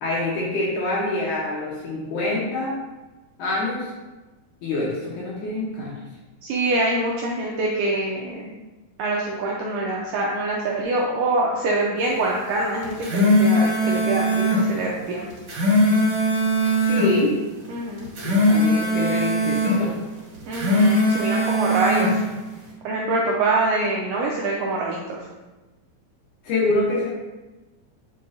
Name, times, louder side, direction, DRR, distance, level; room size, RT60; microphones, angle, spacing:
voice 1, 0.0-2.7 3.4-3.9 4.6-6.0 16.8-17.3 18.2-19.9 26.4-27.1, left 2 dB, 70° left, -5 dB, 1.9 m, -25 dB
voice 2, 6.4-8.5 9.0-15.3 17.7-18.1 20.5-22.2 22.8-25.2, right 2 dB, 80° right, -3 dB, 1.9 m, -25 dB
sound 1, 12.8-14.6 15.3-17.1 18.0-19.8 20.4-22.1, equal, 45° right, 2.5 m, -20 dB
8.2 x 4.6 x 2.5 m, 1.1 s
omnidirectional pair, 4.4 m